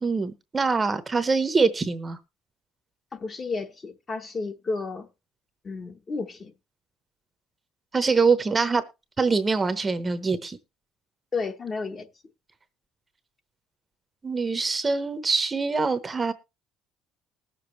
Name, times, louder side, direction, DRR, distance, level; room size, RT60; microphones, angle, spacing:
voice 1, 0.0-2.2 7.9-8.8 9.2-10.6 14.2-16.3, right 4 dB, 20° right, 0.9 m, -24 dB
voice 2, 3.1-5.1 5.6-6.5 11.3-12.1, left 4 dB, 25° left, 1.0 m, -32 dB
20.0 x 7.0 x 3.1 m
cardioid pair, 135°, 0 cm